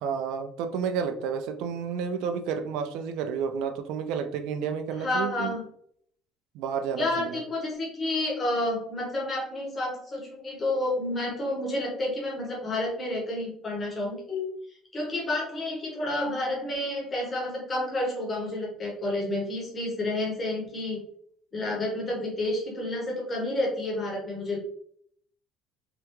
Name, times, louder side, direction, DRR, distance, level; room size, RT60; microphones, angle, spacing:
voice 1, 0.0-5.5 6.5-7.4, right 6 dB, 80° right, 7 dB, 0.4 m, -31 dB
voice 2, 5.0-5.6 7.0-21.0 21.5-24.6, left 1 dB, 25° left, -2 dB, 1.0 m, -30 dB
3.4 x 2.2 x 3.0 m, 0.63 s
cardioid pair, 160°, 0 cm